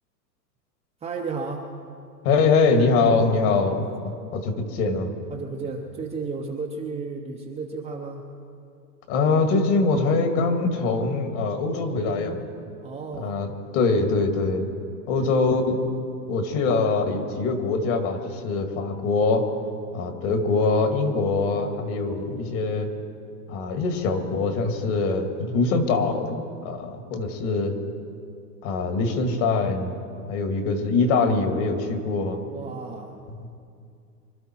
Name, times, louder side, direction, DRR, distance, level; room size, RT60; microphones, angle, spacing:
voice 1, 1.0-1.7 3.5-3.8 5.3-8.3 12.8-13.4 15.2-15.6 16.6-16.7 32.5-33.1, right 4 dB, 15° right, 0 dB, 0.7 m, -33 dB
voice 2, 2.2-3.8 4.3-5.1 9.1-12.4 13.1-14.6 15.1-15.8 16.3-19.4 19.9-22.9 23.5-27.7 28.6-29.9 30.3-32.4, left 3 dB, 45° left, 5 dB, 2.2 m, -23 dB
25.5 x 12.0 x 4.5 m, 2.4 s
hypercardioid pair, 130°, 50 cm